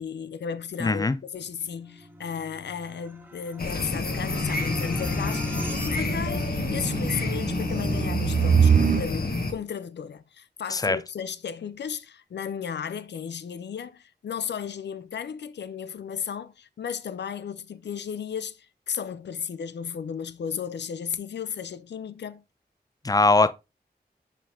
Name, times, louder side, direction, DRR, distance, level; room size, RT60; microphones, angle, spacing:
voice 1, 0.0-22.4, left 7 dB, 90° left, 0.4 m, -34 dB
voice 2, 0.8-1.2 10.7-11.0 23.0-23.5, left 3 dB, 20° left, 0.5 m, -21 dB
sound 1, 1.2-6.4, right 1 dB, 10° right, 1.1 m, -45 dB
sound 2, 3.6-9.5, left 3 dB, 60° left, 1.1 m, -28 dB
sound 3, 4.2-9.1, right 7 dB, 50° right, 0.5 m, -26 dB
5.4 x 5.0 x 3.6 m
cardioid pair, 40°, 17 cm